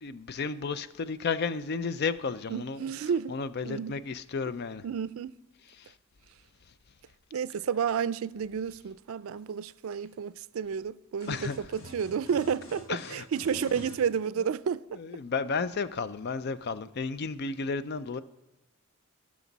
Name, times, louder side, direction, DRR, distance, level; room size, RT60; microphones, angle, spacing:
voice 1, 0.0-2.8 3.3-4.8 11.3-11.6 12.9-13.2 15.0-18.2, left 5 dB, 50° left, 0.5 m, -32 dB
voice 2, 2.5-3.3 3.6-3.9 4.8-5.3 7.3-15.0, right 7 dB, 85° right, 0.4 m, -31 dB
sound 1, 11.2-14.0, equal, 75° left, 1.8 m, -46 dB
18.0 x 6.2 x 4.0 m
head